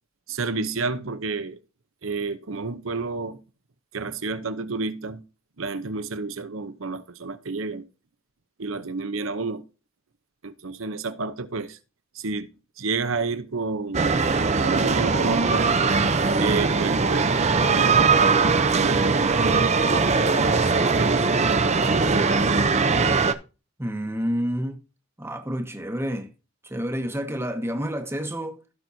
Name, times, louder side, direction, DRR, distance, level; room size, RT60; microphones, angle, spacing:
voice 1, 0.3-1.6 2.0-3.4 3.9-5.2 5.6-7.8 8.6-9.6 10.4-11.8 12.1-12.5 12.8-14.2 14.6-15.7 16.4-17.4 17.7-19.8 20.4-22.3, right 4 dB, 70° right, 0.8 m, -30 dB
sound 1, 13.9-23.3, right 4 dB, 30° right, 0.6 m, -20 dB
voice 2, 23.8-24.8 25.2-26.3 26.6-28.6, equal, 10° right, 1.0 m, -29 dB
16.5 x 6.1 x 2.7 m
head